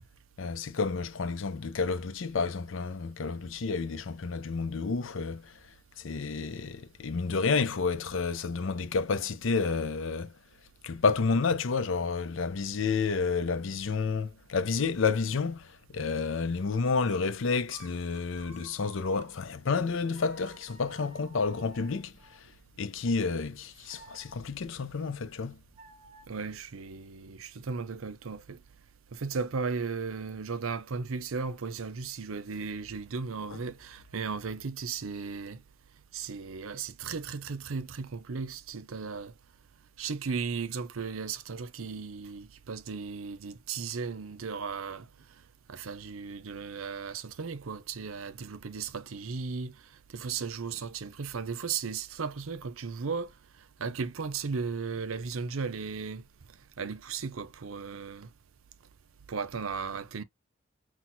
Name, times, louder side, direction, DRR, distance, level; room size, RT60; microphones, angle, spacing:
voice 1, 0.4-5.6 6.0-10.3 10.8-22.5 22.8-25.6, left 4 dB, 70° left, 0.5 m, -30 dB
sound 1, 14.6-19.6 20.1-26.2, right 3 dB, 30° right, 1.1 m, -56 dB
voice 2, 26.3-28.6 29.1-35.6 36.1-39.3 40.0-45.1 45.7-49.8 50.1-53.3 53.8-56.2 56.8-58.3 59.3-60.2, right 5 dB, 85° right, 0.6 m, -36 dB
5.9 x 2.2 x 2.7 m
head